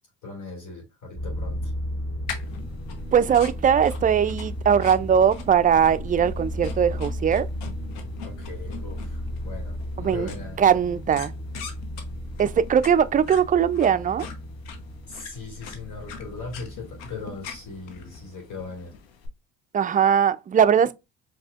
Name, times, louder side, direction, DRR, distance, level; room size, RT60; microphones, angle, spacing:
voice 1, 0.2-1.7 8.2-10.6 15.0-18.9, left 4 dB, 60° left, 2.0 m, -39 dB
sound 1, 1.1-18.2, equal, 40° left, 2.4 m, -35 dB
sound 2, 2.3-19.3, left 6 dB, 90° left, 0.8 m, -43 dB
voice 2, 3.1-7.5 10.0-10.3 10.6-11.3 12.4-14.3 19.7-20.9, right 8 dB, 25° right, 0.3 m, -20 dB
4.7 x 2.9 x 2.4 m
supercardioid pair, 60°, 34 cm